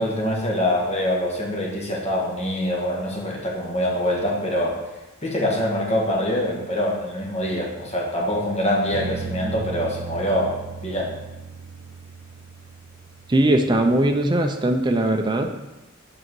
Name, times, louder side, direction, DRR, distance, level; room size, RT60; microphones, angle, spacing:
voice 1, 0.0-4.8 5.2-10.5 10.8-11.1, left 1 dB, 30° left, -3 dB, 1.5 m, -24 dB
sound 1, 8.9-14.4, right 5 dB, 85° right, 0.4 m, -37 dB
voice 2, 13.3-15.5, right 1 dB, 20° right, 4 dB, 0.5 m, -20 dB
7.6 x 3.9 x 4.6 m, 1.0 s
head